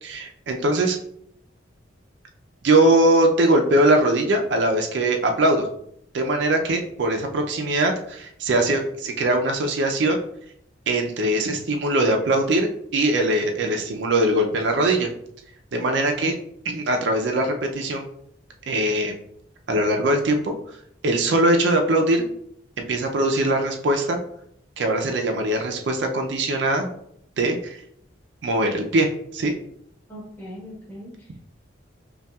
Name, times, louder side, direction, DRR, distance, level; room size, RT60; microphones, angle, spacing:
voice 1, 0.0-1.0 2.6-5.7 6.1-10.2 10.9-15.1 15.7-16.3 16.6-18.0 18.7-19.1 19.7-20.5 21.0-22.3 22.8-24.2 24.8-26.9 27.4-27.8 28.4-29.5, right 1 dB, 60° right, 3 dB, 0.4 m, -21 dB
voice 2, 30.1-31.5, equal, 10° left, -5 dB, 1.0 m, -40 dB
5.4 x 2.3 x 2.3 m, 0.70 s
head